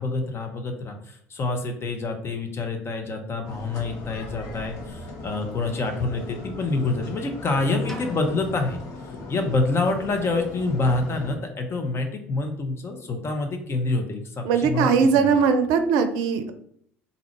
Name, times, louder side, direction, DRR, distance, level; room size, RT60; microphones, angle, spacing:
voice 1, 0.0-8.8 9.3-15.4, left 3 dB, 35° left, 5 dB, 1.0 m, -27 dB
sound 1, 3.4-11.3, left 2 dB, 60° left, 1.1 m, -39 dB
sound 2, 7.9-9.8, equal, 5° left, 0.9 m, -41 dB
voice 2, 14.4-16.5, right 6 dB, 65° right, 8 dB, 0.5 m, -20 dB
3.8 x 2.8 x 4.5 m, 0.65 s
hypercardioid pair, 60°, 7 cm